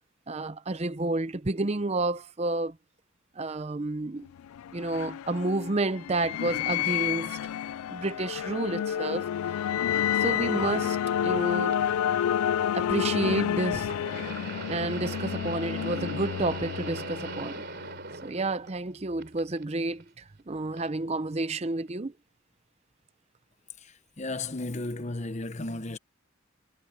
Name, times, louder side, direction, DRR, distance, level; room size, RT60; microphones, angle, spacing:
voice 1, 0.3-2.7 3.4-4.3 4.7-7.4 7.9-9.3 10.2-11.0 11.2-11.8 12.7-13.9 14.7-17.6 18.2-22.1, right 2 dB, 30° right, 0.6 m, -30 dB
sound 1, 4.3-18.0, left 9 dB, 85° left, 0.3 m, -30 dB
sound 2, 11.7-11.8 13.8-18.9 19.2-20.0 20.8-20.9 21.9-22.0, right 4 dB, 50° right, 3.5 m, -40 dB
voice 2, 23.8-26.0, left 2 dB, 30° left, 1.0 m, -34 dB
head